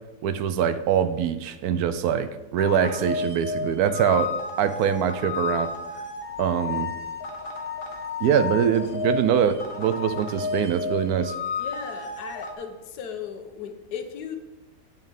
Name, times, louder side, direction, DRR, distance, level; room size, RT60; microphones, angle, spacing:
voice 1, 0.2-4.3 4.6-5.7 6.4-6.9 8.2-11.3, right 8 dB, 75° right, 12 dB, 1.0 m, -23 dB
sound 1, 2.6-12.5, left 4 dB, 40° left, 1.1 m, -32 dB
voice 2, 11.6-14.4, left 7 dB, 75° left, 7 dB, 1.4 m, -36 dB
8.6 x 5.6 x 5.3 m, 1.1 s
omnidirectional pair, 1.7 m